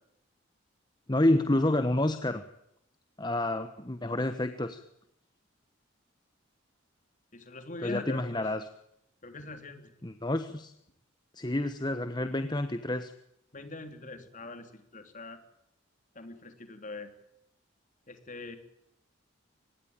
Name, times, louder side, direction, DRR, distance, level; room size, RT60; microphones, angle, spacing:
voice 1, 1.1-2.4 3.2-4.8 7.8-8.6 10.0-10.7 11.3-13.1, left 1 dB, 20° left, 10 dB, 1.2 m, -29 dB
voice 2, 7.3-8.4 9.2-9.9 13.5-15.4 16.1-17.1 18.1-18.6, left 2 dB, 40° left, 8 dB, 3.5 m, -42 dB
25.0 x 20.5 x 8.9 m, 0.78 s
head